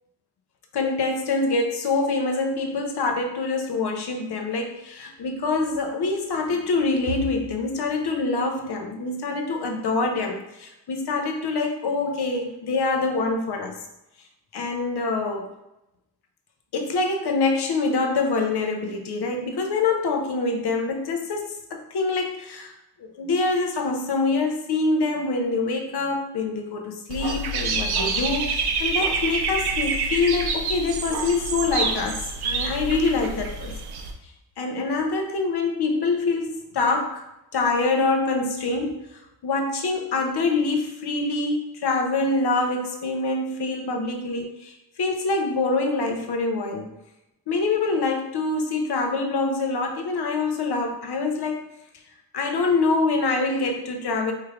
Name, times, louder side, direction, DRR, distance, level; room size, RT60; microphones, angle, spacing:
voice 1, 0.7-13.8 14.5-15.5 16.7-22.7 23.0-33.8 34.6-37.2 37.5-39.0 39.4-46.9 47.5-51.7 52.3-54.3, left 3 dB, 80° left, 3 dB, 0.7 m, -25 dB
Dog / Bird, 27.1-34.1, right 3 dB, 70° right, 0.5 m, -27 dB
4.6 x 3.2 x 2.4 m, 0.90 s
wide cardioid pair, 175°, 39 cm